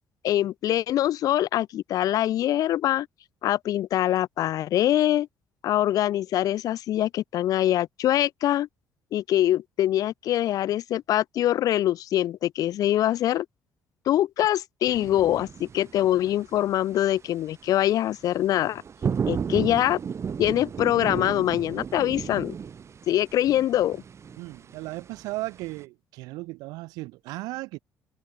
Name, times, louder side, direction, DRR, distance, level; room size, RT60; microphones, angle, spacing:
voice 1, 0.2-3.1 3.4-5.3 5.6-8.7 9.1-13.4 14.0-18.8 19.3-20.0 20.4-22.5 23.1-24.0, left 12 dB, 70° left, 1.6 m, -24 dB
sound 1, 14.9-17.3 17.5-25.8, right 7 dB, 45° right, 4.1 m, -34 dB
voice 2, 24.4-27.8, right 21 dB, 85° right, 5.2 m, -36 dB
supercardioid pair, 70°, 6 cm